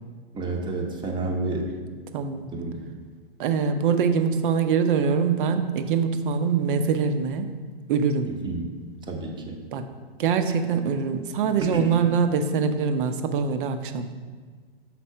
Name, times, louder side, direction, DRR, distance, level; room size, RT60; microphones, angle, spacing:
voice 1, 0.3-1.8 2.5-2.8 8.2-8.7 9.1-9.6 11.6-11.9, right 2 dB, 15° right, 1 dB, 0.8 m, -30 dB
voice 2, 2.1-2.5 3.4-7.5 7.9-8.3 9.7-9.9 10.2-14.1, right 6 dB, 55° right, 8 dB, 0.7 m, -23 dB
5.8 x 4.1 x 5.6 m, 1.5 s
hypercardioid pair, 125°, 31 cm